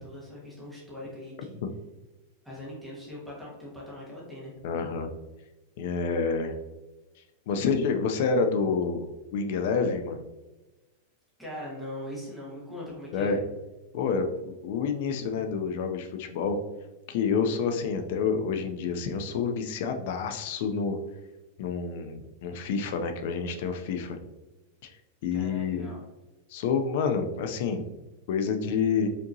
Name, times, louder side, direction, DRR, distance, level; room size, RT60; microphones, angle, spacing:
voice 1, 0.0-1.5 2.4-4.5 11.4-13.3 25.3-26.0, left 1 dB, ahead, -6 dB, 1.2 m, -41 dB
voice 2, 4.6-5.1 5.8-6.5 7.5-10.2 13.1-13.4 13.9-16.6 17.1-21.0 21.6-24.2 25.2-25.9 26.5-27.8 28.3-29.1, left 5 dB, 45° left, 6 dB, 0.4 m, -28 dB
5.1 x 2.8 x 2.6 m, 1.1 s
supercardioid pair, 175°, 0 cm